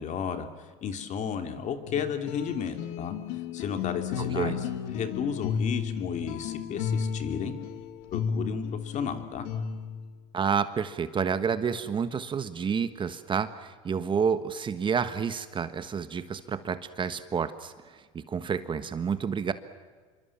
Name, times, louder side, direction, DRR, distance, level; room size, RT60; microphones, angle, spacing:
voice 1, 0.0-7.5 8.1-9.5, left 7 dB, 45° left, 7 dB, 3.2 m, -33 dB
sound 1, 1.9-10.1, left 7 dB, 75° left, 2.1 m, -33 dB
voice 2, 4.2-4.6 10.3-19.5, right 6 dB, 30° right, 12 dB, 1.4 m, -29 dB
27.5 x 24.5 x 7.4 m, 1.5 s
supercardioid pair, 110°, 18 cm